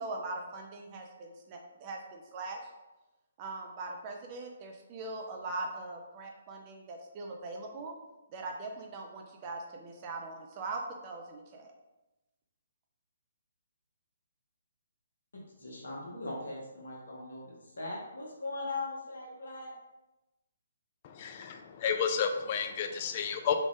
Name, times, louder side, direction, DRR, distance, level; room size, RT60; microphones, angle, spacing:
voice 1, 0.0-2.6 3.4-8.0 8.3-11.7, right 3 dB, 30° right, 1 dB, 0.4 m, -41 dB
voice 2, 15.3-19.7, left 2 dB, 70° left, -3 dB, 1.1 m, -40 dB
voice 3, 21.0-23.5, left 7 dB, 35° left, 6 dB, 0.3 m, -31 dB
3.5 x 2.4 x 3.5 m, 1.0 s
figure-of-eight pair, 135°, 0 cm